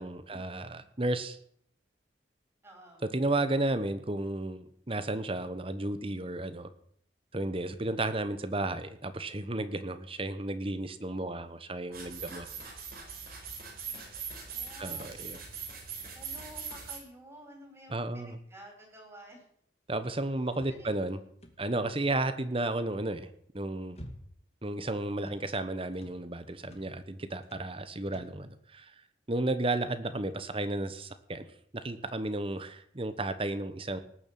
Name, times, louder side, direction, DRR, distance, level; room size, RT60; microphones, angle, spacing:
voice 1, 0.0-1.4 3.1-6.7 7.3-12.5 14.8-15.4 17.9-18.4 19.9-21.2 21.6-23.3 23.5-24.0 24.6-28.9 29.3-31.4 31.7-34.0, right 2 dB, 30° right, 11 dB, 1.1 m, -33 dB
voice 2, 2.6-3.0 13.8-14.0 14.5-15.1 16.1-19.5 20.7-20.9, right 1 dB, 15° right, 1 dB, 5.4 m, -51 dB
sound 1, 11.9-17.0, right 6 dB, 55° right, 4.3 m, -41 dB
sound 2, 20.5-21.9 23.4-24.6 24.8-25.5 25.9-26.2 26.6-27.0 27.4-27.8 28.1-28.4, equal, 35° left, 2.2 m, -50 dB
18.5 x 7.2 x 8.5 m, 0.66 s
head